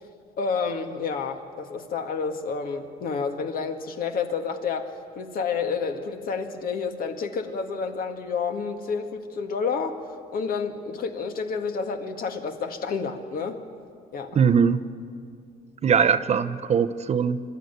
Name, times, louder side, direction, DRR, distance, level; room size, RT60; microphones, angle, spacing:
voice 1, 0.4-10.0 10.3-13.6 14.1-14.4, left 5 dB, 60° left, 5 dB, 1.9 m, -29 dB
voice 2, 14.3-14.8 15.8-17.4, right 6 dB, 40° right, 11 dB, 0.8 m, -21 dB
26.0 x 12.5 x 9.3 m, 2.3 s
cardioid pair, 110°, 17 cm